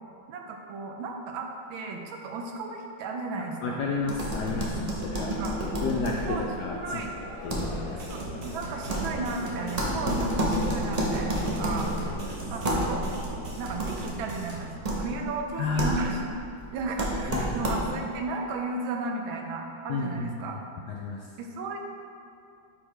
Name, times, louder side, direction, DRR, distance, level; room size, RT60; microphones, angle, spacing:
voice 1, 0.3-3.8 5.2-5.6 6.2-6.5 6.7-7.2 7.9-11.9 12.5-13.1 13.6-16.2 16.7-20.6 21.4-21.9, right 3 dB, 80° right, 3 dB, 1.5 m, -34 dB
voice 2, 3.6-5.3 5.8-7.0 7.4-8.0 9.9-10.2 12.1-12.3 15.6-15.9 17.3-17.4 19.9-20.5 20.9-21.3, left 4 dB, 80° left, -1 dB, 0.9 m, -31 dB
sound 1, 4.0-18.1, right 1 dB, 35° right, 0.6 m, -31 dB
Crowd, 4.6-14.7, left 1 dB, 50° left, 0.9 m, -44 dB
sound 2, 7.9-14.6, right 2 dB, 50° right, 1.4 m, -40 dB
9.6 x 4.7 x 3.2 m, 2.5 s
omnidirectional pair, 2.2 m